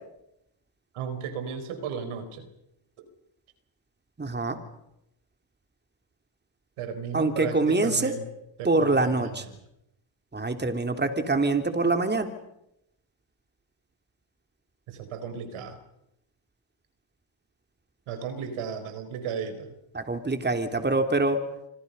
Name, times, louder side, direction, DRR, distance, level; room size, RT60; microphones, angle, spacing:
voice 1, 0.9-2.5 6.8-8.3 8.6-9.6 14.9-15.8 18.1-19.7, right 6 dB, 85° right, 9 dB, 4.6 m, -35 dB
voice 2, 4.2-4.6 7.1-8.1 8.7-9.4 10.3-12.3 19.9-21.4, right 2 dB, 20° right, 6 dB, 3.4 m, -25 dB
29.0 x 26.5 x 5.6 m, 0.83 s
cardioid pair, 75°, 48 cm